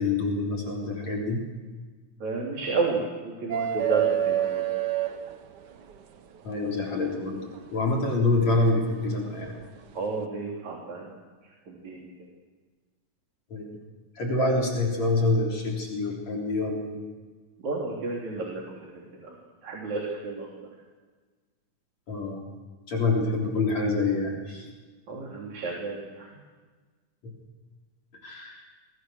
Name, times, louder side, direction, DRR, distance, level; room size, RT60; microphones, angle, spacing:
voice 1, 0.0-1.4 6.4-7.4 7.7-9.5 13.5-13.8 14.2-17.0 22.1-22.4 22.9-24.7 27.2-27.3 28.2-28.6, left 2 dB, 60° left, -1 dB, 5.0 m, -26 dB
voice 2, 2.2-4.6 9.9-11.1 11.7-12.1 17.6-19.0 19.6-20.5 25.1-26.3, right 3 dB, 60° right, -1 dB, 4.8 m, -31 dB
sound 1, 3.5-5.9 7.6-7.7 9.5-9.6, right 11 dB, 85° right, 0.9 m, -26 dB
28.0 x 23.0 x 6.4 m, 1.4 s
omnidirectional pair, 3.6 m